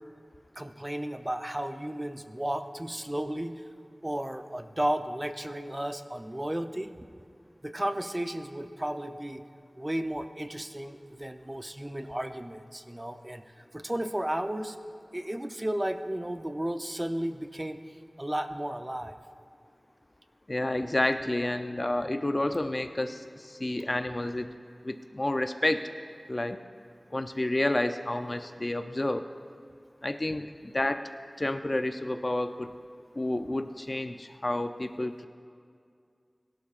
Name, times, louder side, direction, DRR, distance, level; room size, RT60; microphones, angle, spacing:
voice 1, 0.6-3.6 4.0-6.9 7.6-9.4 9.8-13.4 13.7-14.8 15.1-17.8 18.2-19.1, right 1 dB, 25° right, 7 dB, 0.7 m, -33 dB
voice 2, 20.5-24.5 24.8-25.9 26.3-26.6 27.1-29.3 30.0-31.1 31.4-32.7 33.2-35.3, left 1 dB, 40° left, 8 dB, 0.5 m, -30 dB
22.0 x 12.0 x 2.5 m, 2.2 s
wide cardioid pair, 45°, 0 cm